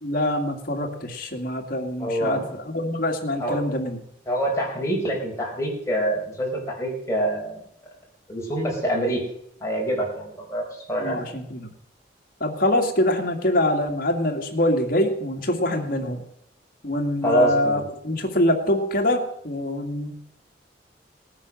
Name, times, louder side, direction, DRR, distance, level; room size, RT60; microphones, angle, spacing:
voice 1, 0.0-4.0 11.0-11.7 12.4-16.2 16.8-20.1, left 1 dB, 55° left, 2 dB, 2.3 m, -24 dB
voice 2, 2.0-2.6 3.4-3.6 4.3-7.6 8.3-9.2 9.6-11.2 17.2-17.8, right 1 dB, 15° left, -2 dB, 4.7 m, -25 dB
19.0 x 9.5 x 6.3 m, 0.74 s
head